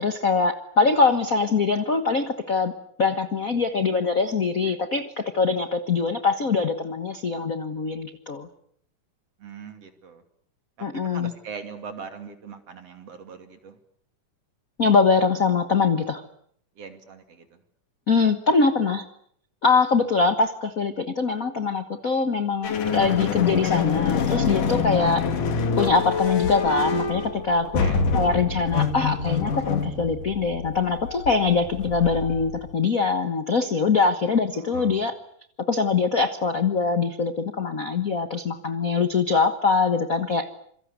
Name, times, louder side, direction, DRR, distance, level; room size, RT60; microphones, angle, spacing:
voice 1, 0.0-2.7 3.0-8.5 10.8-11.3 14.8-16.2 18.1-19.0 19.6-25.3 25.8-27.8 28.1-35.1 35.7-40.5, left 4 dB, 50° left, 9 dB, 1.0 m, -23 dB
voice 2, 9.4-10.2 10.8-13.8 16.8-17.6 27.6-28.0 34.4-35.1, right 5 dB, 50° right, 7 dB, 3.6 m, -41 dB
sound 1, 22.6-32.7, left 5 dB, 85° left, 4.0 m, -26 dB
26.5 x 23.5 x 8.1 m, 0.66 s
omnidirectional pair, 3.6 m